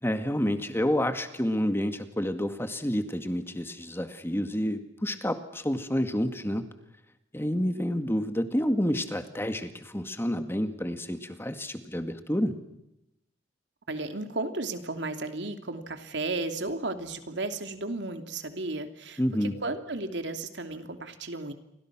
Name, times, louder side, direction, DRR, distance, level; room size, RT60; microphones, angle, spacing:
voice 1, 0.0-6.6 7.3-12.5 19.2-19.5, equal, 15° left, 8 dB, 2.0 m, -29 dB
voice 2, 13.9-21.5, right 2 dB, 85° right, 7 dB, 2.8 m, -34 dB
29.5 x 24.5 x 6.2 m, 0.84 s
head